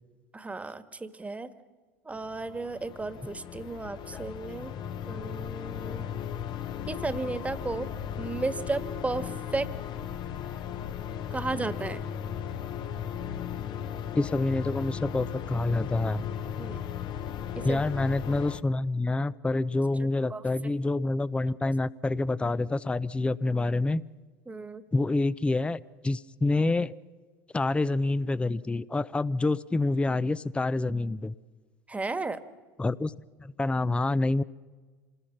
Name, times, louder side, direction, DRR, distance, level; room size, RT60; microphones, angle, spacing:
voice 1, 0.3-1.5 2.0-4.7 5.0-6.1 6.9-7.9 8.2-9.7 11.3-12.0 16.6-16.8 17.5-17.8 20.3-20.4 24.5-24.8 31.9-32.4, right 3 dB, 15° right, 12 dB, 1.5 m, -34 dB
sound 1, 2.1-18.6, left 9 dB, 50° left, 1.1 m, -36 dB
voice 2, 14.1-16.2 17.6-24.0 24.9-26.9 27.5-31.3 32.8-33.1 33.4-34.4, left 2 dB, 10° left, 18 dB, 0.6 m, -27 dB
27.0 x 20.5 x 5.9 m, 1.4 s
hypercardioid pair, 90°, 10 cm